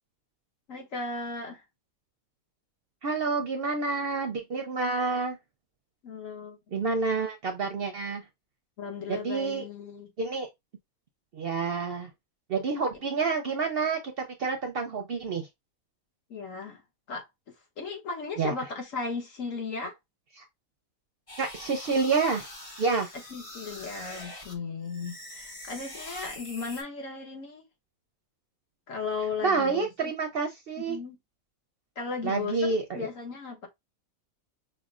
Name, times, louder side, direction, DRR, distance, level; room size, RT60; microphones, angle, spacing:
voice 1, 0.7-1.6 6.0-6.6 8.8-10.1 16.3-16.8 17.1-17.3 17.8-19.9 23.3-27.6 28.9-30.1 30.8-31.2 32.0-33.7, left 4 dB, 70° left, 1.5 m, -36 dB
voice 2, 3.0-5.4 6.7-8.2 9.1-9.6 10.2-10.5 11.3-12.1 12.5-15.5 18.4-18.5 20.4-20.5 21.4-22.5 22.8-23.1 29.4-31.0 32.2-33.1, right 4 dB, 60° right, 0.6 m, -28 dB
sound 1, 21.3-24.5 24.9-26.8, left 1 dB, 30° left, 0.8 m, -44 dB
5.7 x 2.1 x 2.4 m
omnidirectional pair, 1.4 m